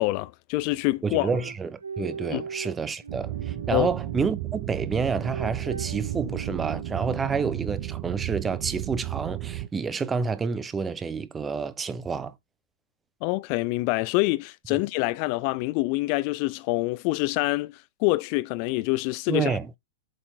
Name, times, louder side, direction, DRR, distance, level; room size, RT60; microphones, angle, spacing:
voice 1, 0.0-1.3 2.3-2.4 3.7-3.9 13.2-19.6, left 20 dB, 45° left, 0.3 m, -26 dB
voice 2, 1.0-12.3 19.3-19.7, right 5 dB, 15° right, 0.7 m, -29 dB
sound 1, 1.2-4.3 5.1-7.3, right 5 dB, 75° right, 0.7 m, -39 dB
sound 2, 3.1-9.7, right 15 dB, 45° right, 0.9 m, -33 dB
7.6 x 4.4 x 4.4 m
figure-of-eight pair, 100°, 0 cm